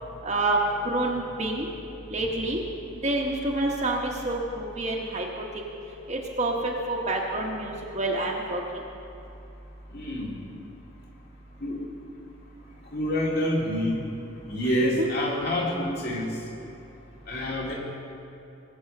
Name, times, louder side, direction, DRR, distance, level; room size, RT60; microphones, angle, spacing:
voice 1, 0.2-1.7 2.1-2.6 3.0-5.3 6.1-8.6 15.0-15.1, right 2 dB, 35° right, -2 dB, 1.1 m, -27 dB
voice 2, 9.9-10.3 11.6-11.8 12.9-14.0 14.5-16.4 17.3-17.7, equal, 50° left, -3 dB, 2.4 m, -27 dB
20.5 x 7.1 x 5.4 m, 2.8 s
head